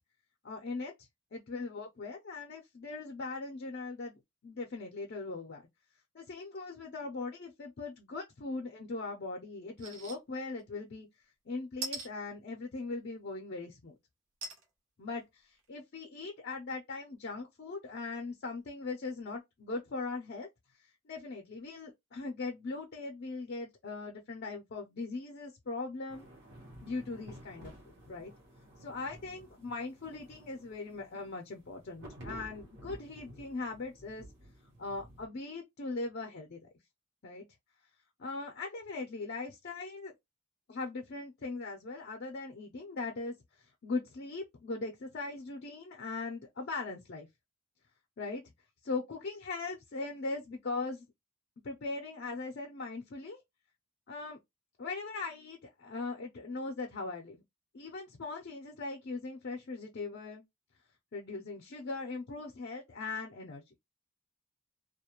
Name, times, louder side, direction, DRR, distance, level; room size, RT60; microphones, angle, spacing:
voice 1, 0.4-0.9 1.3-5.6 6.1-11.1 11.5-13.9 15.0-20.5 21.1-26.3 26.8-27.7 28.1-28.3 28.8-34.3 34.8-36.6 37.2-37.4 38.2-40.1 40.7-47.3 48.2-48.4 48.8-51.1 51.6-53.4 54.1-54.4 54.8-57.4 57.7-60.4 61.1-63.6, left 3 dB, 50° left, 0.5 m, -40 dB
sound 1, 9.8-10.2 10.6-10.7 11.8-12.1 14.4-14.6 15.2-15.3 15.6-15.7, right 3 dB, 90° right, 0.8 m, -39 dB
sound 2, 26.1-35.3, equal, 55° right, 0.9 m, -52 dB
2.3 x 2.1 x 2.9 m
head